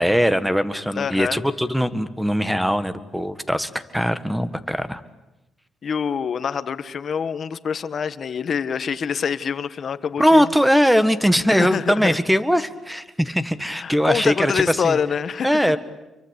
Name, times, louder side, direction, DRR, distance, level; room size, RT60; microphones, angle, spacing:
voice 1, 0.0-5.0 10.2-15.0 15.4-15.8, equal, ahead, 12 dB, 1.7 m, -20 dB
voice 2, 0.9-1.4 5.8-10.5 11.5-12.2 13.6-15.6, left 6 dB, 50° left, 13 dB, 1.4 m, -26 dB
28.5 x 24.0 x 8.3 m, 1.0 s
cardioid pair, 90°, 0 cm